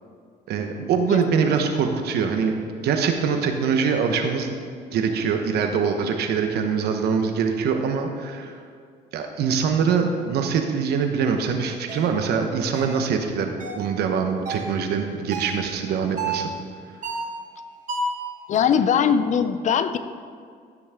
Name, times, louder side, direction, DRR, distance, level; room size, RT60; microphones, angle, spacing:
voice 1, 0.5-4.6 4.9-8.6 9.1-16.5, right 6 dB, 70° right, 5 dB, 1.1 m, -23 dB
sound 1, 11.9-12.1 12.7-13.0 13.6-13.9 14.5-14.7 15.3-15.6 16.2-16.5 17.0-17.4 17.9-18.2, right 3 dB, 50° right, 2.6 m, -30 dB
voice 2, 18.5-20.0, left 7 dB, 45° left, 12 dB, 0.6 m, -21 dB
15.5 x 6.2 x 3.7 m, 2.2 s
cardioid pair, 110°, 17 cm